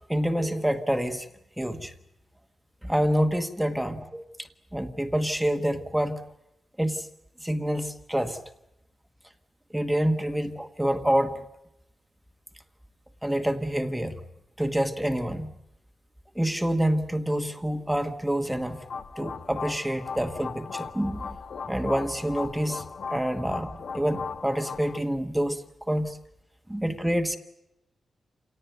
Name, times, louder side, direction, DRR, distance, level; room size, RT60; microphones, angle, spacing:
voice 1, 0.1-1.3 1.6-1.9 2.8-6.2 6.8-7.1 7.4-8.4 9.7-11.4 13.2-14.1 14.6-15.5 16.3-18.8 19.2-21.3 21.7-26.2 26.7-27.4, equal, 5° right, 7 dB, 1.2 m, -27 dB
sound 1, 18.5-25.0, left 5 dB, 60° left, 1.1 m, -38 dB
28.5 x 18.5 x 9.1 m, 0.88 s
wide cardioid pair, 175°, 0 cm